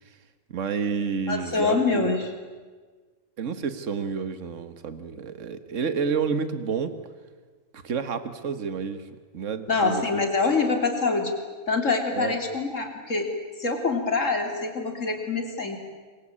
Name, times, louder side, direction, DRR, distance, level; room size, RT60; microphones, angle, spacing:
voice 1, 0.5-2.1 3.4-6.9 7.7-9.1 9.3-10.2 12.1-12.4, right 6 dB, 65° right, 11 dB, 1.7 m, -29 dB
voice 2, 1.3-2.3 9.7-11.3 11.7-13.3 13.6-15.8, left 4 dB, 70° left, 4 dB, 3.7 m, -25 dB
26.5 x 23.0 x 8.7 m, 1.4 s
omnidirectional pair, 1.4 m